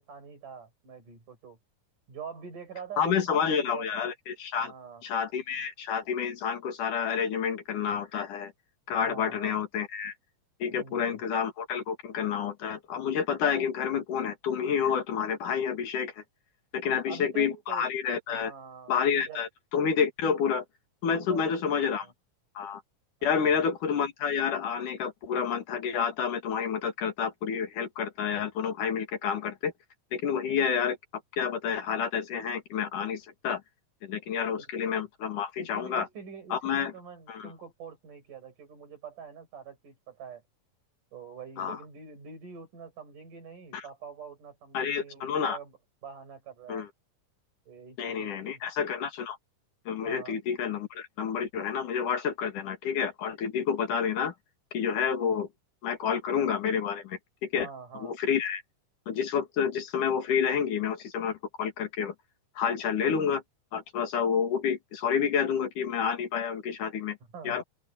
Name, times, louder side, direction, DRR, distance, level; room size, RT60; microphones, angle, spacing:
voice 1, 0.0-1.6 2.1-4.1 4.6-5.0 9.0-9.6 10.7-11.2 16.8-17.9 18.3-18.9 19.3-19.4 21.1-22.1 23.2-23.7 35.6-40.4 41.1-45.8 46.0-46.9 47.7-48.6 50.0-50.4 57.6-58.1 67.3-67.6, right 6 dB, 70° right, 7.6 m, -45 dB
voice 2, 3.0-4.7 5.0-8.5 8.9-10.1 10.6-16.2 16.7-18.5 18.9-20.6 21.0-22.1 22.5-22.8 23.2-29.7 30.1-31.0 31.4-33.6 34.0-36.1 36.5-36.9 37.3-37.5 41.6-41.8 43.7-43.8 44.7-45.6 46.7-46.9 48.0-49.4 49.9-54.3 54.7-55.5 55.8-57.7 57.9-58.6 59.1-62.1 62.6-63.4 63.7-67.2 67.4-67.6, left 7 dB, 70° left, 3.5 m, -29 dB
open air
omnidirectional pair, 3.8 m